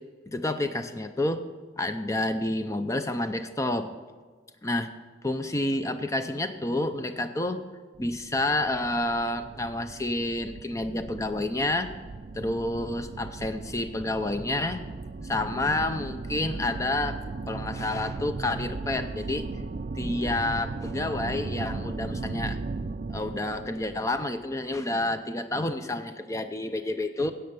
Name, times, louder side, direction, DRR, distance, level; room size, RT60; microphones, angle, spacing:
voice 1, 0.3-1.4 1.8-3.9 4.6-4.9 5.2-7.6 8.0-11.9 12.3-14.9 15.2-17.2 17.5-19.5 19.9-22.6 23.1-27.3, left 2 dB, 15° left, 9 dB, 0.5 m, -29 dB
sound 1, 7.9-25.0, right 3 dB, 45° right, 0.4 m, -37 dB
9.9 x 8.0 x 6.8 m, 1.4 s
head